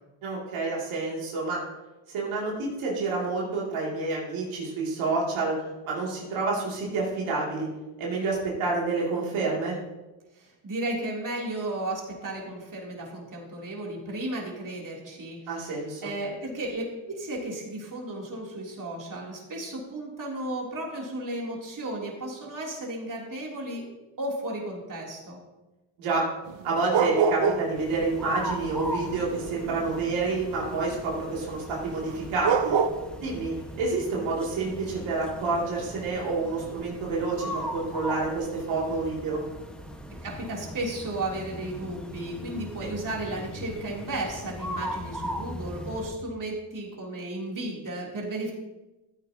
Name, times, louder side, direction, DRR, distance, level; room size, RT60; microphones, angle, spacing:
voice 1, 0.2-1.6 2.1-5.5 5.8-7.7 8.0-9.7 15.5-16.0 26.0-26.2 26.6-32.7 33.2-39.4 42.8-42.9, right 3 dB, 85° right, -4 dB, 2.8 m, -28 dB
voice 2, 10.4-15.7 16.0-23.8 24.2-25.4 40.2-48.5, right 1 dB, 40° right, -2 dB, 3.2 m, -34 dB
sound 1, 26.5-27.8 28.1-30.5 32.1-32.2 32.4-32.9, right 6 dB, 65° right, 1.0 m, -25 dB
sound 2, 27.7-46.1, equal, ahead, 1.4 m, -39 dB
14.0 x 9.2 x 2.9 m, 1.1 s
cardioid pair, 75°, 47 cm